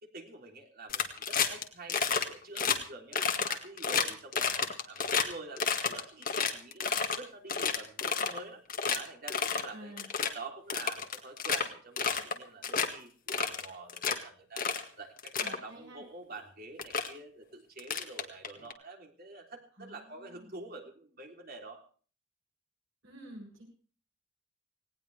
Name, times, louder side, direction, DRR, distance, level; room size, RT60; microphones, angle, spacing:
voice 1, 0.0-3.2 3.5-8.6 8.9-9.9 10.3-14.6 15.0-21.8, right 3 dB, 40° right, 2 dB, 3.5 m, -47 dB
sound 1, 0.9-1.6 1.9-2.3 2.6-2.8 3.1-5.3 5.6-7.2 7.5-8.4 8.7-9.0 9.3-9.7 10.0-10.3 10.7-11.6 12.0-12.4 12.6-12.9 13.3-14.2 14.6-14.8 15.2-15.6 16.4-16.5 16.8-17.1 17.8-18.7, left 6 dB, 40° left, 1.9 m, -30 dB
voice 2, 9.7-10.1 15.4-16.0 19.8-20.5 23.0-23.7, right 1 dB, 60° right, -3 dB, 7.8 m, -49 dB
19.0 x 18.5 x 3.4 m, 0.42 s
head